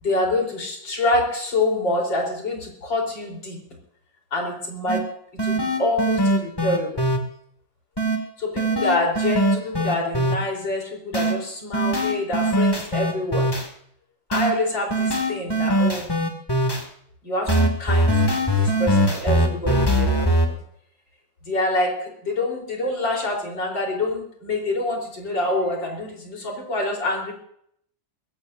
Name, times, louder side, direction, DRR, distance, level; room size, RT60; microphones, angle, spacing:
voice 1, 0.0-3.6 4.3-5.0 5.4-7.0 8.4-13.5 14.3-16.1 17.2-20.6 21.4-27.3, left 2 dB, 75° left, 0 dB, 4.7 m, -26 dB
sound 1, 4.9-5.0 5.4-7.2 8.0-8.2 8.6-10.3 11.1-11.3 11.7-13.7 14.3-14.5 14.9-16.8 17.5-20.5, equal, 10° left, 2.2 m, -21 dB
21.5 x 16.5 x 2.7 m, 0.67 s
omnidirectional pair, 2.0 m